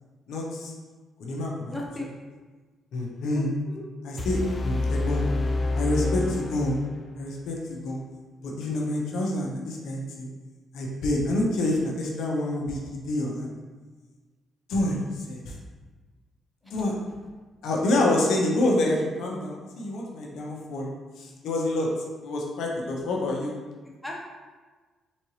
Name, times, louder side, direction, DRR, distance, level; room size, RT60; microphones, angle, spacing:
voice 1, 0.3-0.7 1.2-1.7 2.9-3.5 4.0-5.3 5.7-6.8 7.2-8.0 8.4-10.3 10.7-13.5 14.7-15.5 16.6-16.9 17.6-20.9 21.2-21.9 22.2-23.5, left 1 dB, 80° left, -1 dB, 0.8 m, -27 dB
voice 2, 1.7-2.1 3.3-3.8 24.0-24.2, left 1 dB, 5° left, -2 dB, 0.9 m, -36 dB
sound 1, 4.2-7.2, left 2 dB, 35° left, 0.5 m, -28 dB
4.2 x 3.9 x 3.1 m, 1.3 s
cardioid pair, 90°, 0 cm